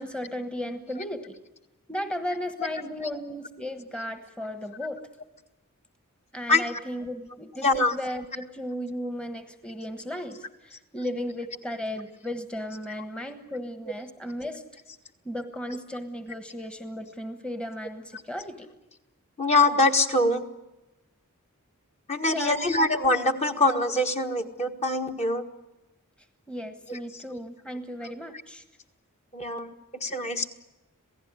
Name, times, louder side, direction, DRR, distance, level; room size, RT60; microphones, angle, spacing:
voice 1, 0.0-1.3 1.9-5.1 6.3-14.6 15.2-18.7 22.2-22.8 26.5-28.6, equal, 5° left, 8 dB, 1.3 m, -35 dB
voice 2, 7.6-7.9 19.4-20.4 22.1-25.5 26.9-27.0 28.0-28.1 29.3-29.7 30.0-30.5, left 2 dB, 30° left, 4 dB, 1.6 m, -24 dB
27.0 x 17.5 x 9.7 m, 0.99 s
head